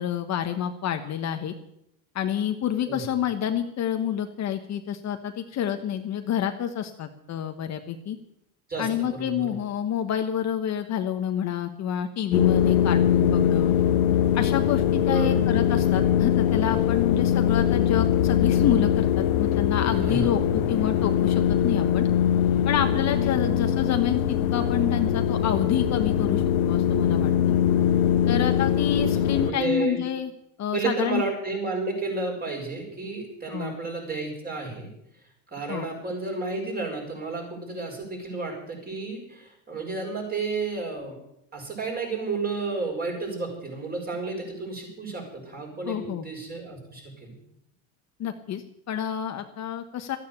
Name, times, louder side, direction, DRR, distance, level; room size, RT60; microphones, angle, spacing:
voice 1, 0.0-1.5 2.1-8.2 8.8-13.7 14.3-22.1 22.6-27.3 28.3-30.3 30.6-31.2 33.5-33.7 35.7-35.9 45.9-46.3 48.2-50.2, left 9 dB, 40° left, 6 dB, 1.3 m, -28 dB
voice 2, 8.7-9.6 15.1-15.5 20.0-20.7 23.3-23.5 29.0-29.1 29.3-30.0 30.7-34.9 35.5-41.2 41.5-47.4, right 3 dB, 20° right, 0 dB, 6.8 m, -32 dB
sound 1, 12.3-29.5, left 10 dB, 90° left, 1.2 m, -22 dB
13.5 x 9.6 x 8.4 m, 0.77 s
supercardioid pair, 105°, 40 cm